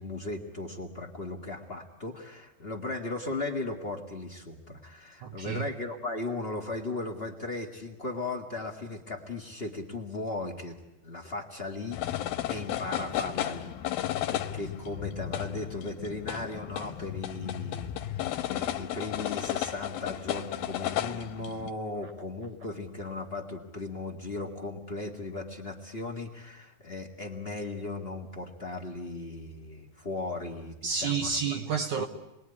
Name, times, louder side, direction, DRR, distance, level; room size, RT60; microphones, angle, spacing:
voice 1, 0.0-10.8 11.0-31.4 32.0-32.1, left 2 dB, 35° left, 0.9 m, -37 dB
voice 2, 5.2-5.6 30.8-32.1, right 6 dB, 65° right, 2.2 m, -30 dB
sound 1, 11.9-21.7, left 12 dB, 75° left, 2.8 m, -34 dB
28.5 x 21.0 x 9.8 m
omnidirectional pair, 4.4 m